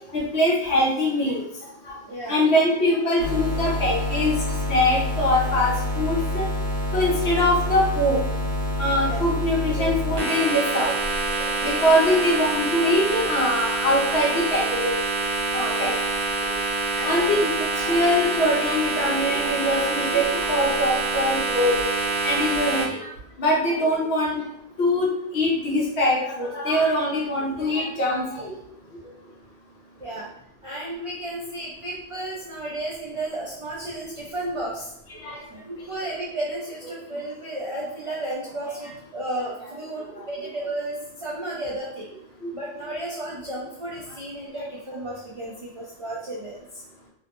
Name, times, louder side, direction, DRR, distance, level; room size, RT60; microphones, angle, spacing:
voice 1, 0.1-1.4 1.8-2.0 2.2-4.4 4.7-6.4 6.9-8.2 8.8-11.0 11.6-14.9 15.5-15.9 17.0-21.8 22.2-23.1 23.4-24.4 24.8-25.1 25.3-28.5 35.1-35.4 40.0-40.2 42.4-42.5, left 1 dB, 75° left, -2 dB, 1.0 m, -23 dB
voice 2, 2.1-2.4 9.0-9.2 12.1-12.2 15.7-15.9 16.9-17.4 30.0-30.3 30.6-34.9 35.5-42.1 42.5-46.8, right 1 dB, 55° right, -6 dB, 0.3 m, -33 dB
sound 1, 3.2-22.9, right 2 dB, 75° right, 1.0 m, -26 dB
2.9 x 2.0 x 2.9 m, 0.78 s
omnidirectional pair, 1.1 m